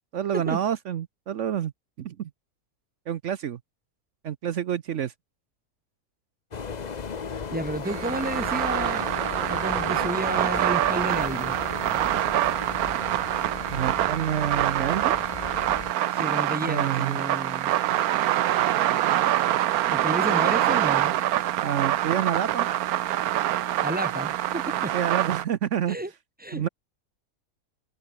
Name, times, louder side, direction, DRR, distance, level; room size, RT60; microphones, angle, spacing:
voice 1, 0.1-1.7 2.0-2.3 3.1-3.6 4.2-5.1 13.7-15.2 16.6-17.2 21.6-22.7 24.9-26.0 26.5-26.7, right 9 dB, 60° right, 0.9 m, -28 dB
sound 1, 6.5-15.9, left 5 dB, 35° left, 0.8 m, -36 dB
voice 2, 7.5-9.1 9.5-11.6 16.1-17.7 19.9-21.1 23.8-24.9 25.9-26.1 26.4-26.7, right 1 dB, 15° right, 0.3 m, -31 dB
sound 2, 7.9-25.4, right 13 dB, 75° right, 1.2 m, -25 dB
omnidirectional pair, 1.6 m